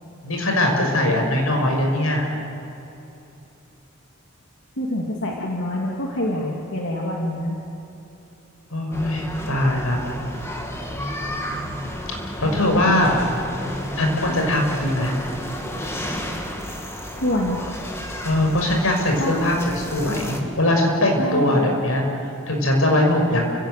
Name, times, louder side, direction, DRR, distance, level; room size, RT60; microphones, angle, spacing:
voice 1, 0.2-2.3 8.7-10.0 11.5-11.9 12.4-13.2 14.0-15.1 18.2-23.4, left 1 dB, 85° left, 1 dB, 6.1 m, -21 dB
voice 2, 4.8-7.6 12.8-12.9 14.3-14.4 17.1-17.6 19.2-19.5 21.2-21.8, left 1 dB, 60° left, -2 dB, 2.6 m, -26 dB
sound 1, 8.9-20.4, equal, 15° left, 2.4 m, -32 dB
30.0 x 16.5 x 9.3 m, 3.0 s
head